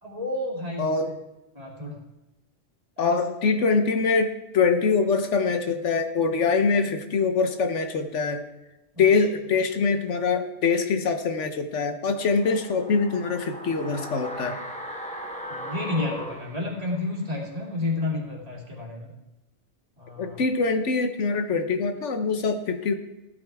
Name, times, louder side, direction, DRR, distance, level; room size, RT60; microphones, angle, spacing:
voice 1, 0.0-0.9 1.5-2.0 3.0-3.2 8.9-9.0 15.5-19.1 20.0-20.4, left 2 dB, 30° right, -2 dB, 2.7 m, -31 dB
voice 2, 0.8-1.1 3.0-8.4 9.0-14.6 20.2-22.9, left 4 dB, 85° left, 8 dB, 1.3 m, -24 dB
sound 1, 12.2-17.3 17.6-17.7, equal, 5° left, 1.2 m, -38 dB
15.5 x 12.0 x 3.5 m, 0.96 s
omnidirectional pair, 1.2 m